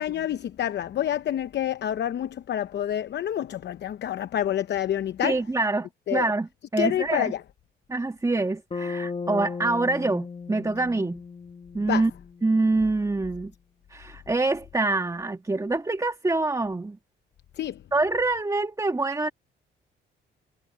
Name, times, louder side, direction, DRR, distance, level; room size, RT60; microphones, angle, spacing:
voice 1, 0.0-5.4 6.1-6.3 6.8-7.4 11.9-12.1 17.6-17.8, left 11 dB, 60° left, 0.8 m, -28 dB
voice 2, 5.2-7.3 7.9-11.2 11.7-12.1 12.4-13.5 13.9-17.0 17.9-19.3, right 2 dB, 15° right, 1.9 m, -25 dB
Bass guitar, 8.7-12.8, left 4 dB, 30° left, 1.0 m, -36 dB
cardioid pair, 90°, 20 cm